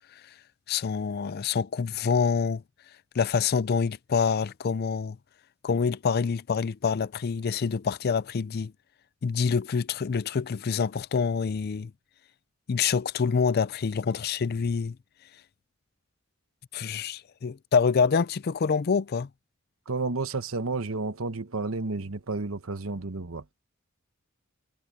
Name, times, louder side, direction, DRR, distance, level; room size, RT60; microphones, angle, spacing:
voice 1, 0.7-2.6 3.1-5.2 5.6-8.7 9.2-11.9 12.7-15.0 16.7-19.3, left 5 dB, 50° left, 0.4 m, -26 dB
voice 2, 19.9-23.4, right 3 dB, 80° right, 1.1 m, -31 dB
head